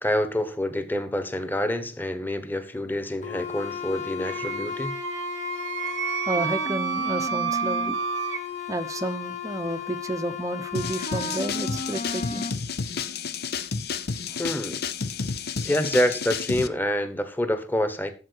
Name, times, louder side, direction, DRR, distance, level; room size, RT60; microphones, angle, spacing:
voice 1, 0.0-5.0 14.4-14.8 15.6-18.1, left 1 dB, 10° left, 1.2 m, -27 dB
sound 1, 3.2-12.5, left 5 dB, 40° left, 1.0 m, -34 dB
Wind instrument woodwind instrument, 4.3-8.4, right 7 dB, 70° right, 0.8 m, -30 dB
voice 2, 6.3-8.0 8.7-12.5 14.3-14.4, right 1 dB, 20° right, 0.8 m, -31 dB
sound 2, 10.7-16.7, left 5 dB, 60° left, 0.7 m, -31 dB
12.5 x 7.6 x 4.7 m
head